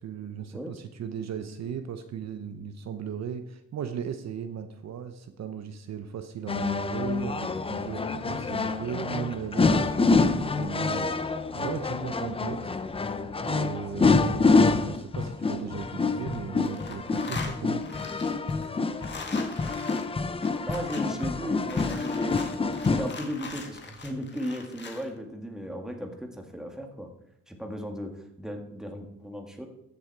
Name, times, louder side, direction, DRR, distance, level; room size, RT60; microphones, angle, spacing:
voice 1, 0.0-12.7 13.4-17.8, right 7 dB, 55° right, 8 dB, 0.9 m, -37 dB
sound 1, 6.5-23.1, left 3 dB, 15° left, 0.6 m, -27 dB
sound 2, 15.6-16.4 16.6-25.1, left 4 dB, 35° left, 1.7 m, -42 dB
voice 2, 20.7-22.4 22.8-27.1 27.5-29.7, equal, ahead, 3 dB, 1.7 m, -36 dB
14.5 x 7.0 x 4.7 m, 0.81 s
cardioid pair, 140°, 32 cm